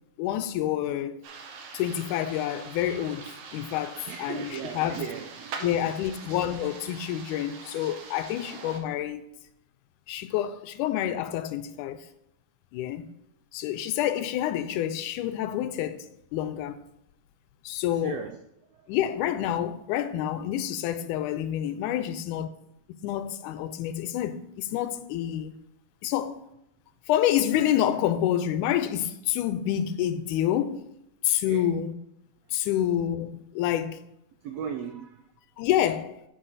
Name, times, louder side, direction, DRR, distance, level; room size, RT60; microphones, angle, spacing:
voice 1, 0.2-1.2 1.7-5.1 5.6-9.2 10.1-12.0 12.7-13.1 13.5-16.8 17.7-18.2 18.9-22.5 23.0-25.5 26.0-26.4 27.1-30.9 31.2-31.9 32.5-34.0 35.6-36.2, left 11 dB, 90° left, 2.1 m, -28 dB
sound 1, 1.2-8.8, right 5 dB, 65° right, 1.4 m, -43 dB
voice 2, 4.1-5.8 18.0-18.4 18.7-18.8 31.5-31.7 34.4-35.3, right 7 dB, 90° right, 1.4 m, -37 dB
10.0 x 4.5 x 4.1 m
omnidirectional pair, 3.5 m